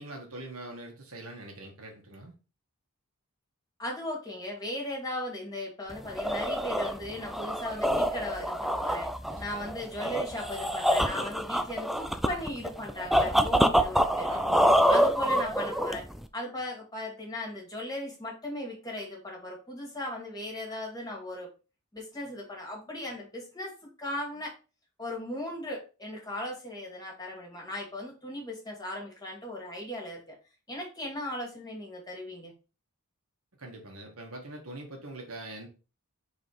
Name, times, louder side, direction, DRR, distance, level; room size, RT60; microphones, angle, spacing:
voice 1, 0.0-2.3 9.3-9.7 14.3-14.7 33.6-35.7, right 2 dB, 70° right, 1 dB, 1.9 m, -43 dB
voice 2, 3.8-9.1 9.4-14.3 14.9-16.1 16.3-21.5 21.9-24.5 25.0-30.4 30.7-32.5, left 1 dB, 15° left, -1 dB, 2.4 m, -37 dB
sound 1, 5.9-16.3, equal, ahead, 0.4 m, -26 dB
5.1 x 4.1 x 5.2 m, 0.33 s
head